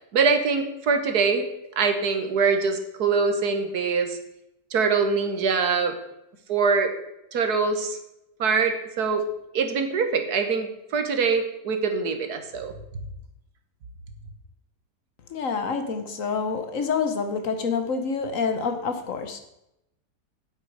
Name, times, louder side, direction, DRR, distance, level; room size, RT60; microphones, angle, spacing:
voice 1, 0.1-1.5 1.8-4.2 4.7-6.0 6.5-6.9 7.3-8.0 8.4-9.3 9.5-12.7, right 5 dB, 70° right, 6 dB, 1.6 m, -23 dB
voice 2, 15.3-19.4, left 5 dB, 55° left, 7 dB, 1.3 m, -27 dB
9.2 x 7.9 x 4.7 m, 0.85 s
omnidirectional pair, 1.8 m